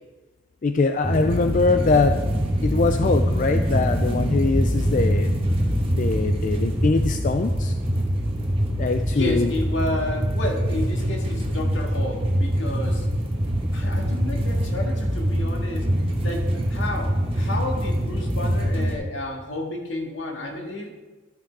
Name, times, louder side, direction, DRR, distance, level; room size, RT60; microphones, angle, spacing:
voice 1, 0.6-2.2 2.6-5.3 5.9-7.7 8.8-9.6, left 3 dB, 40° left, 7 dB, 0.4 m, -22 dB
sound 1, 1.0-18.9, equal, 30° right, 1.4 m, -24 dB
voice 2, 9.1-13.1 13.7-15.8 16.2-20.9, left 1 dB, 75° left, 0 dB, 2.0 m, -31 dB
13.0 x 6.2 x 4.7 m, 1.2 s
head